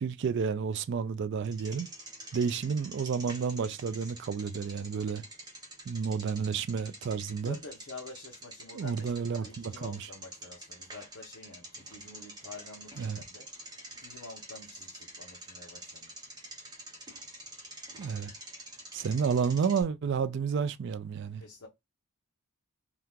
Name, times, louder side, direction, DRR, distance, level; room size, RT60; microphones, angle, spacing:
voice 1, 0.0-1.9 2.3-5.2 5.9-7.6 8.7-10.1 13.0-13.2 18.0-18.3 18.9-21.4, right 6 dB, 55° right, 0.3 m, -31 dB
Bicycle, 1.4-19.8, right 1 dB, 20° right, 0.8 m, -47 dB
voice 2, 7.4-13.5 13.9-16.3 21.4-21.7, left 3 dB, 65° left, 0.8 m, -48 dB
2.8 x 2.4 x 3.5 m
head